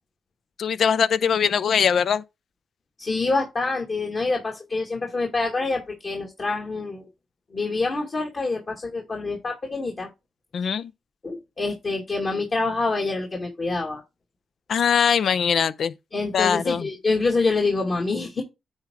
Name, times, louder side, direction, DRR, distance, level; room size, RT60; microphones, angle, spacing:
voice 1, 0.6-2.2 10.5-10.9 14.7-15.9 16.3-16.9, left 7 dB, 65° left, 0.5 m, -21 dB
voice 2, 3.0-7.1 7.5-10.1 11.2-14.0 16.1-18.4, left 3 dB, 45° left, 2.2 m, -26 dB
9.6 x 3.6 x 4.6 m
cardioid pair, 70°, 0 cm